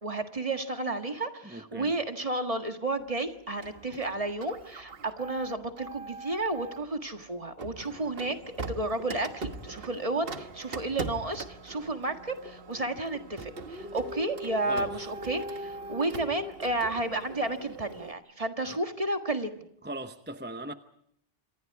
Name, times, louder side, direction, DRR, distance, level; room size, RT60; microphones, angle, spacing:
voice 1, 0.0-19.7, right 2 dB, 35° right, 1.7 m, -32 dB
voice 2, 1.4-1.9 14.6-15.0 18.7-18.8 19.8-20.7, right 1 dB, 10° right, 0.8 m, -39 dB
Printer, 3.6-6.9 7.6-18.1, right 2 dB, 70° right, 1.5 m, -41 dB
27.5 x 26.5 x 4.7 m
omnidirectional pair, 1.0 m